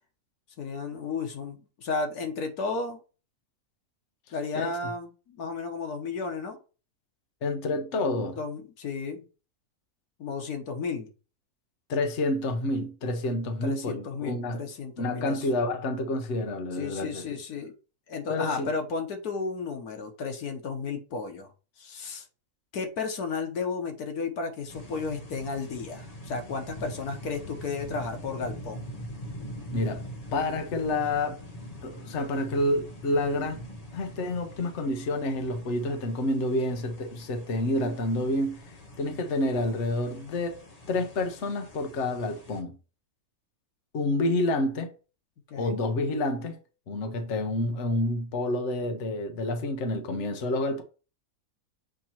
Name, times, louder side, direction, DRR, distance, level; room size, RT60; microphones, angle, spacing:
voice 1, 0.6-3.0 4.3-6.6 8.4-9.2 10.2-11.1 13.6-15.5 16.8-17.7 18.1-21.5 21.8-22.2 22.7-28.9 45.5-45.8, left 4 dB, 85° left, 1.6 m, -33 dB
voice 2, 7.4-8.4 11.9-14.6 15.0-17.2 18.3-18.7 29.7-30.0 30.3-31.4 31.8-33.6 33.9-40.6 40.9-42.8 43.9-44.9 45.6-46.6 46.9-50.8, left 2 dB, 55° left, 1.1 m, -28 dB
sound 1, 24.7-42.6, equal, 35° left, 0.7 m, -43 dB
7.5 x 2.9 x 4.4 m
omnidirectional pair, 1.6 m